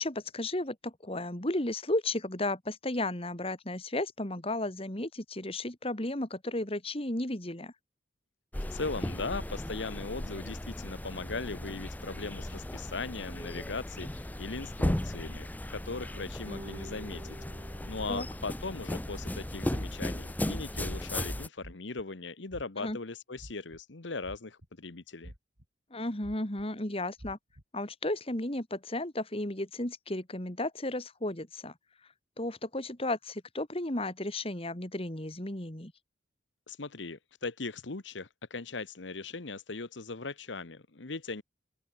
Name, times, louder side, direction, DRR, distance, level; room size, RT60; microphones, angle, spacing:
voice 1, 0.0-7.7 18.1-18.3 22.8-23.0 25.9-27.4 27.7-31.7 32.4-35.9, left 1 dB, 30° left, 2.8 m, -34 dB
sound 1, 8.5-21.5, left 1 dB, 10° left, 0.5 m, -36 dB
voice 2, 8.7-25.3 36.7-41.4, left 3 dB, 80° left, 1.3 m, -39 dB
sound 2, 16.5-19.0, right 1 dB, 30° right, 2.1 m, -49 dB
sound 3, 18.6-19.1 19.7-20.1 20.7-21.2 21.6-22.0 22.5-22.9 23.4-23.8 24.2-24.9 25.2-25.6 26.2-26.6 27.2-27.6, equal, 80° right, 4.7 m, -48 dB
open air
head